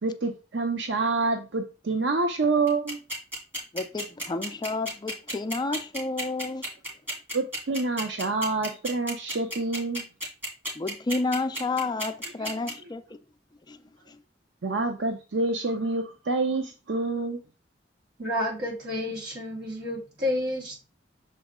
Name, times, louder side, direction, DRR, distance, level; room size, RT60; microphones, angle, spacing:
voice 1, 0.0-3.0 7.3-10.0 14.6-17.4, right 3 dB, 80° right, 0.7 m, -27 dB
sound 1, 2.7-12.7, equal, 10° right, 2.6 m, -32 dB
voice 2, 3.7-6.7 10.8-13.0 13.7-13.8 14.1-14.2, left 3 dB, 25° left, 0.4 m, -30 dB
voice 3, 18.2-20.9, left 1 dB, 60° right, 3.2 m, -30 dB
6.7 x 4.0 x 3.6 m
head